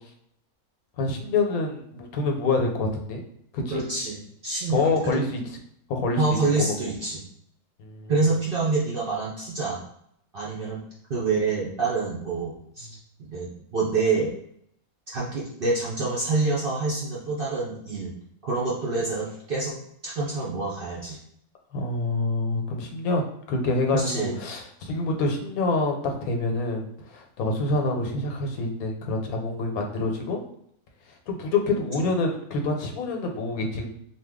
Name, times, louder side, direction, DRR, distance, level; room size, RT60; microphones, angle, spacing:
voice 1, 1.0-3.2 3.5-3.8 4.7-5.4 5.9-6.6 7.8-8.1 10.5-10.7 21.7-23.2 23.5-30.4 31.3-33.9, left 3 dB, 85° left, 2 dB, 1.1 m, -26 dB
voice 2, 3.7-5.2 6.2-7.2 8.1-9.8 10.3-10.8 11.1-12.9 13.2-14.3 15.1-18.1 18.4-19.7 20.0-21.2 23.9-24.3, right 3 dB, 60° right, -5 dB, 0.6 m, -27 dB
2.8 x 2.2 x 3.4 m, 0.70 s
omnidirectional pair, 1.5 m